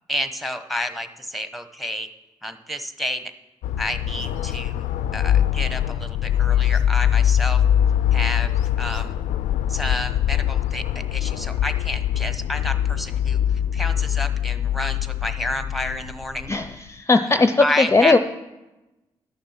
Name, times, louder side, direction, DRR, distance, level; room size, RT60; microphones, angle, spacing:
voice 1, 0.1-2.1 2.4-3.3 3.8-4.9 5.1-7.6 8.1-9.2 9.7-13.4 13.7-16.5 17.6-18.2, left 1 dB, ahead, 9 dB, 1.1 m, -30 dB
sound 1, 3.6-16.7, left 10 dB, 85° left, 0.4 m, -23 dB
voice 2, 16.5-18.2, left 3 dB, 20° left, 9 dB, 0.6 m, -18 dB
11.5 x 6.7 x 5.8 m, 1.0 s
supercardioid pair, 45°, 12 cm